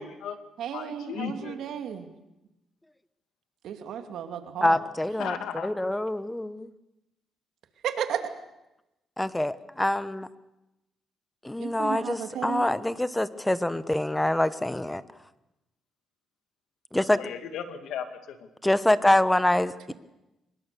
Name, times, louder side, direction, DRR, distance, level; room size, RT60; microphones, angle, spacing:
voice 1, 0.0-0.4 0.7-1.6 5.2-5.7 17.2-18.4, left 7 dB, 80° left, 8 dB, 2.3 m, -36 dB
voice 2, 0.6-2.1 3.6-4.8 7.8-8.2 11.6-12.7, right 9 dB, 75° right, 7 dB, 2.5 m, -33 dB
voice 3, 4.6-5.4 5.6-6.7 9.2-10.3 11.4-15.0 16.9-17.2 18.6-19.9, left 1 dB, 10° left, 14 dB, 1.1 m, -25 dB
24.5 x 21.5 x 6.9 m, 0.93 s
cardioid pair, 90°, 0 cm